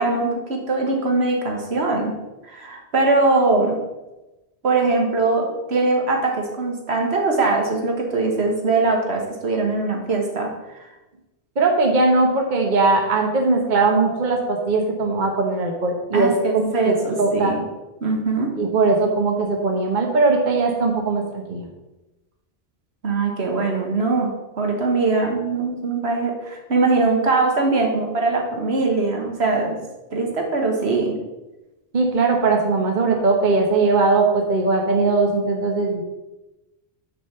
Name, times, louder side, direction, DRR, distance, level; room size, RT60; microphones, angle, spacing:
voice 1, 0.0-2.1 2.4-3.8 4.6-10.5 10.8-10.9 16.1-17.6 18.0-18.5 23.0-24.3 24.6-29.8 30.1-31.2, right 3 dB, 80° right, 1 dB, 1.7 m, -21 dB
voice 2, 11.6-17.5 18.6-21.6 31.9-36.0, right 3 dB, 50° right, 2 dB, 1.1 m, -20 dB
6.4 x 5.1 x 6.8 m, 1.1 s
omnidirectional pair, 1.1 m